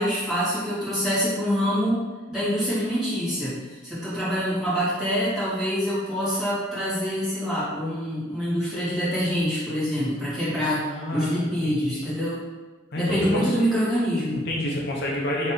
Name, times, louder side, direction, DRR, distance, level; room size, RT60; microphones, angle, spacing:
voice 1, 0.0-12.4 13.0-14.4, equal, ahead, -12 dB, 1.5 m, -26 dB
voice 2, 10.8-12.0 12.9-13.6 14.4-15.5, left 1 dB, 55° left, -3 dB, 0.6 m, -29 dB
3.0 x 2.8 x 3.9 m, 1.2 s
head